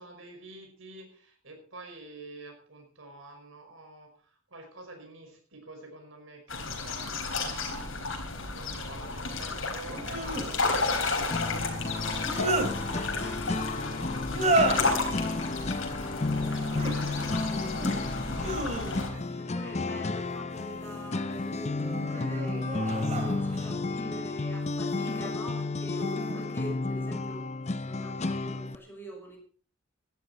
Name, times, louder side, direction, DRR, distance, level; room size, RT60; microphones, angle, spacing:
voice 1, 0.0-4.1 4.5-7.9 8.5-18.6 18.9-19.8, right 2 dB, 70° right, 3 dB, 5.5 m, -48 dB
sound 1, 6.5-19.1, left 3 dB, 70° left, 3.9 m, -32 dB
sound 2, 7.5-7.6 9.9-10.5 12.0-12.7 14.2-15.0 16.5-16.9 17.4-18.0 18.4-19.3 20.5-21.1 21.7-23.8 24.8-25.3 25.9-26.4, right 2 dB, 35° right, 3.1 m, -32 dB
sound 3, 11.3-28.7, left 3 dB, 35° left, 0.7 m, -32 dB
voice 2, 19.4-27.5 27.8-29.4, equal, 10° left, 1 dB, 5.6 m, -44 dB
16.5 x 13.0 x 4.3 m, 0.43 s
head